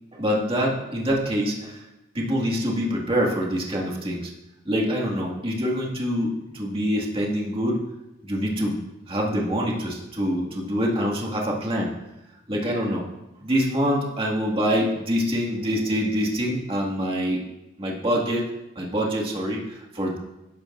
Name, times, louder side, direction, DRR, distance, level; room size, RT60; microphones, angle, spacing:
voice 1, 0.1-1.8 2.1-4.3 4.7-7.8 8.2-8.8 9.1-11.9 12.5-13.1 13.4-17.4 17.8-18.5 18.8-20.2, equal, 30° right, -2 dB, 2.0 m, -25 dB
13.0 x 11.5 x 2.6 m, 0.97 s
head